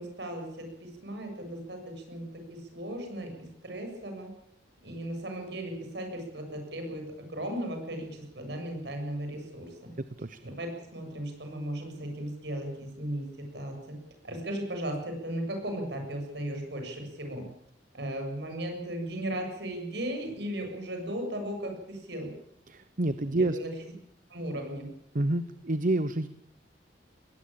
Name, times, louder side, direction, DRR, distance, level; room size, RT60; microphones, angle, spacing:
voice 1, 0.0-4.3 4.8-9.9 10.4-17.4 17.9-22.3 23.5-23.7 24.3-24.9, right 1 dB, 65° right, 4 dB, 7.4 m, -36 dB
voice 2, 22.7-23.6 25.1-26.3, right 2 dB, 50° right, 13 dB, 0.9 m, -28 dB
21.0 x 18.0 x 8.8 m, 0.71 s
head